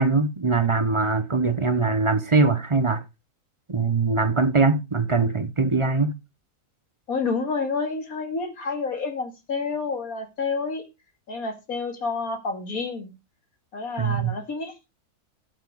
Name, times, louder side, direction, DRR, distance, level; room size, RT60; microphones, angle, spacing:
voice 1, 0.0-3.0 3.7-6.1 14.0-14.3, right 3 dB, 30° right, 0.5 m, -22 dB
voice 2, 7.1-10.9 11.3-13.1 13.7-14.7, left 4 dB, 60° left, 2.6 m, -29 dB
11.5 x 7.7 x 4.8 m
omnidirectional pair, 1.7 m